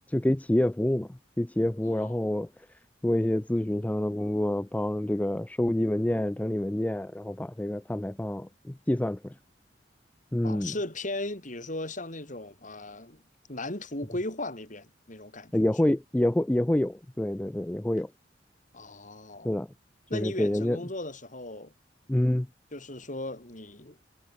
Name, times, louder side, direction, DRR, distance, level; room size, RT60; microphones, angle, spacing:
voice 1, 0.1-2.5 3.0-9.3 10.3-10.7 15.5-18.1 19.4-19.7 20.1-20.8 22.1-22.5, left 1 dB, 10° left, 0.4 m, -27 dB
voice 2, 10.4-13.2 13.5-15.5 18.7-19.6 20.1-21.7 22.7-24.0, left 2 dB, 45° left, 6.4 m, -37 dB
head